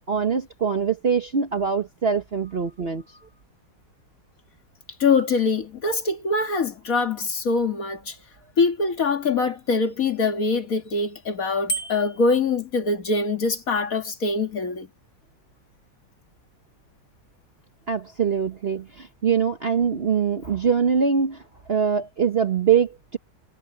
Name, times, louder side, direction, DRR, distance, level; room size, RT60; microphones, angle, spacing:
voice 1, 0.1-3.2 17.9-21.4 21.7-23.2, right 6 dB, 40° right, 1.0 m, -23 dB
voice 2, 5.0-8.2 8.6-14.9, left 4 dB, 50° left, 2.3 m, -23 dB
Bicycle bell, 11.7-12.3, right 3 dB, 80° left, 3.0 m, -30 dB
omnidirectional pair, 2.0 m